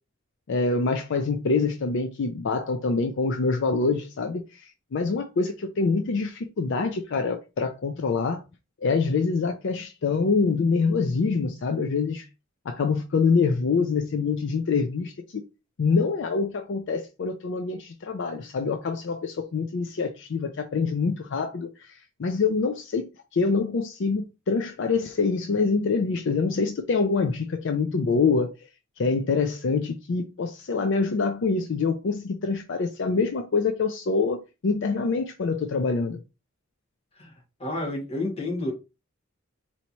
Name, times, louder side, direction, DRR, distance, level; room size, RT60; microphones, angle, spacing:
voice 1, 0.5-8.4 8.8-12.3 12.7-15.1 15.8-23.1 23.3-28.5 29.0-36.2, left 4 dB, 60° left, 0.4 m, -25 dB
voice 2, 37.6-38.7, left 2 dB, 30° left, 1.5 m, -30 dB
4.4 x 2.7 x 2.9 m
head